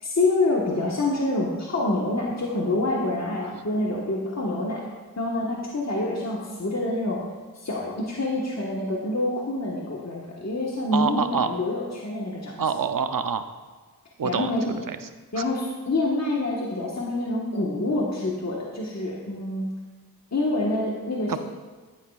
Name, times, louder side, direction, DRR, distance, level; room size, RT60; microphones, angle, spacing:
voice 1, 0.0-4.8 5.2-7.2 7.5-12.6 14.2-14.7 15.3-19.6 20.3-21.4, left 2 dB, 45° left, -3 dB, 1.3 m, -26 dB
voice 2, 10.9-11.5 12.6-13.4 14.2-14.5 14.9-15.1 15.4-15.5 21.3-21.4, right 6 dB, 60° right, 9 dB, 0.6 m, -26 dB
11.0 x 9.4 x 2.4 m, 1.4 s
wide cardioid pair, 45°, 37 cm